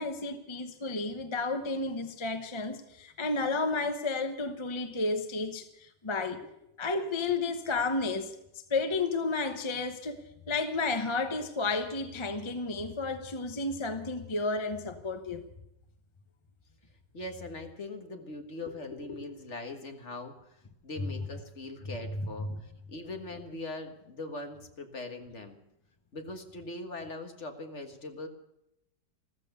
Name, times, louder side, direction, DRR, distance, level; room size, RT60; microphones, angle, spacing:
voice 1, 0.0-6.4 6.8-8.3 8.7-10.2 10.5-15.4 22.2-22.5, left 3 dB, 20° left, 0.8 m, -32 dB
voice 2, 17.1-20.6 20.8-25.6 26.1-28.3, left 2 dB, 45° left, 1.8 m, -41 dB
14.5 x 14.0 x 6.7 m
omnidirectional pair, 1.9 m